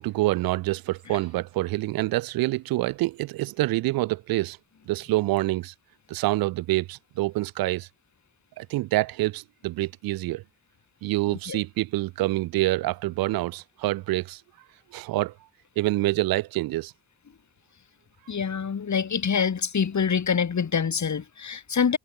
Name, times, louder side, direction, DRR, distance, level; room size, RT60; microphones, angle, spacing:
voice 1, 0.0-4.6 4.9-5.7 6.1-7.9 8.6-10.4 11.0-14.4 14.9-15.3 15.8-16.9, right 18 dB, 85° right, 0.9 m, -26 dB
voice 2, 11.3-11.6 18.3-22.0, left 6 dB, 55° left, 3.6 m, -26 dB
hypercardioid pair, 40°, 35 cm